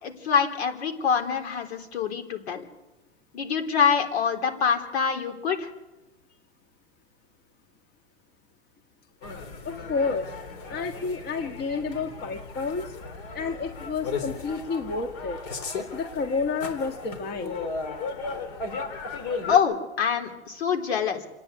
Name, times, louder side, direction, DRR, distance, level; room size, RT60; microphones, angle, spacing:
voice 1, 0.0-2.6 3.3-5.7 19.5-21.2, left 7 dB, 70° left, 5 dB, 3.8 m, -25 dB
sound 1, 9.2-19.6, left 4 dB, 50° left, 4.0 m, -36 dB
voice 2, 9.7-10.3 10.7-12.9 13.3-15.4 15.9-17.6, left 4 dB, 30° left, 6 dB, 1.9 m, -30 dB
29.5 x 9.9 x 9.7 m, 1.0 s
hypercardioid pair, 125°, 33 cm